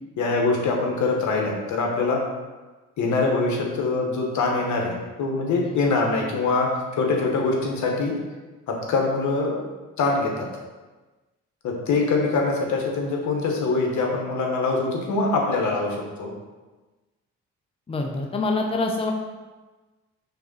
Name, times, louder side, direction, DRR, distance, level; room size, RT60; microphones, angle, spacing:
voice 1, 0.2-2.2 3.0-8.2 8.7-9.7 10.0-10.5 11.6-16.3, left 3 dB, 70° left, 0 dB, 1.3 m, -24 dB
voice 2, 17.9-19.1, left 3 dB, 20° left, 2 dB, 0.7 m, -25 dB
4.5 x 3.7 x 5.5 m, 1.2 s
cardioid pair, 90°, 30 cm